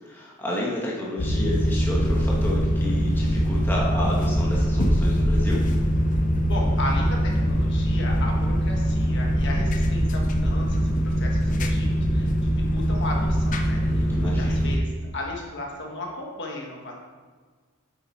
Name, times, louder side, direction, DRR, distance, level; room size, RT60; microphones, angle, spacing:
voice 1, 0.0-5.6 13.8-14.7, left 1 dB, 10° left, -5 dB, 1.4 m, -31 dB
sound 1, 1.2-14.8, equal, 35° left, 0.6 m, -22 dB
voice 2, 6.4-16.9, left 2 dB, 50° left, -1 dB, 1.6 m, -35 dB
8.3 x 7.9 x 4.2 m, 1.5 s
head